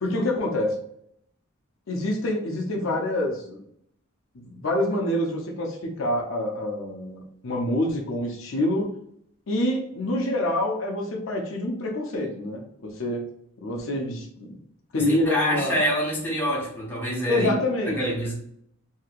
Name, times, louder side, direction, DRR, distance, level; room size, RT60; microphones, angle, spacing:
voice 1, 0.0-0.8 1.9-3.6 4.3-8.9 9.5-13.2 13.6-14.6 14.9-15.8 17.3-18.0, left 1 dB, 70° left, 1 dB, 0.6 m, -26 dB
voice 2, 14.9-17.5 17.9-18.3, equal, 10° left, -5 dB, 1.0 m, -26 dB
2.9 x 2.8 x 2.4 m, 0.70 s
head